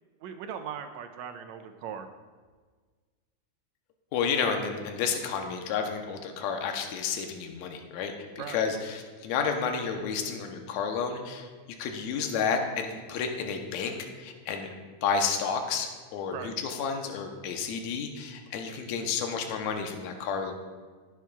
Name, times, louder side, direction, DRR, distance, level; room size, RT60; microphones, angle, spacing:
voice 1, 0.2-2.1 8.4-8.6 16.3-16.5, right 8 dB, 80° right, 7 dB, 1.9 m, -39 dB
voice 2, 4.1-11.5 11.8-14.7 15.0-20.5, left 6 dB, 80° left, 4 dB, 2.1 m, -31 dB
15.5 x 7.4 x 2.3 m, 1.5 s
omnidirectional pair, 3.3 m